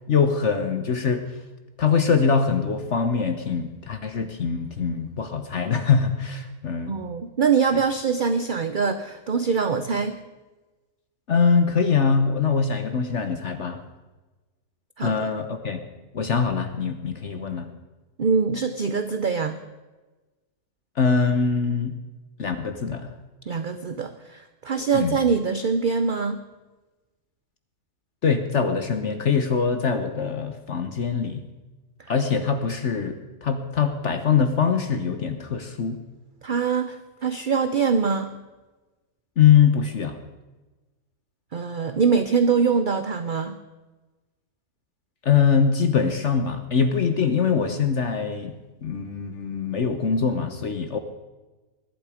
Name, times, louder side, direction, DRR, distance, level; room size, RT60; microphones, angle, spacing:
voice 1, 0.1-1.2 1.8-6.9 11.3-13.8 15.0-15.8 16.1-17.7 21.0-21.9 22.4-23.1 24.9-25.2 28.2-31.4 32.1-36.0 39.4-40.2 45.2-48.5 48.8-51.0, left 6 dB, 55° left, 8 dB, 1.2 m, -23 dB
voice 2, 6.9-10.2 15.0-15.3 18.2-19.6 23.5-26.4 32.0-32.1 36.4-37.0 37.2-38.3 41.5-43.6, right 5 dB, 45° right, 9 dB, 0.7 m, -23 dB
21.5 x 11.5 x 5.0 m, 1.2 s
omnidirectional pair, 1.6 m